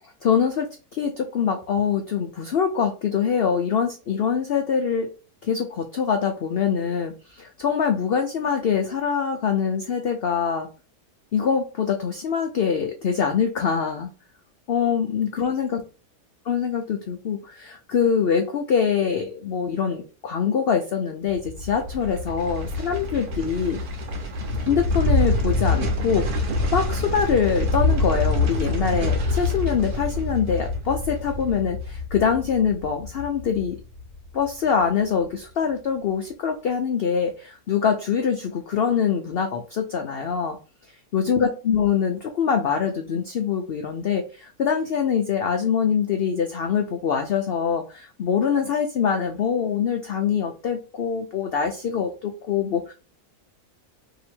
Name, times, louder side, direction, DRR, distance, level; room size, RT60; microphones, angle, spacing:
voice 1, 0.2-5.1 5.4-10.7 11.3-14.1 14.7-15.8 16.5-23.8 24.6-33.8 34.3-40.6 41.1-52.9, left 7 dB, 80° left, 5 dB, 0.5 m, -24 dB
sound 1, 21.3-34.5 34.8-34.9, left 2 dB, 75° right, 1.3 m, -26 dB
2.9 x 2.7 x 4.2 m, 0.34 s
omnidirectional pair, 1.6 m